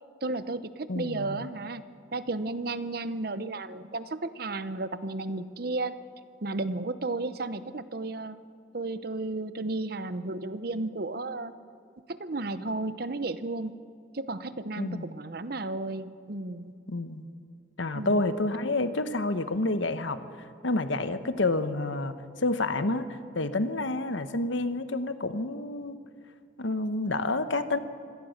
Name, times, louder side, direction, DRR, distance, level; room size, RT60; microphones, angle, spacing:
voice 1, 0.2-1.8 2.1-5.9 6.4-8.4 8.7-11.5 12.1-13.7 14.1-16.7 17.9-18.3, right 2 dB, 50° right, 13 dB, 0.8 m, -33 dB
voice 2, 0.9-1.4 14.8-15.1 16.9-17.3 17.8-20.2 20.6-26.0 26.6-27.8, left 2 dB, 75° left, 11 dB, 1.1 m, -29 dB
25.0 x 17.0 x 6.5 m, 2.3 s
head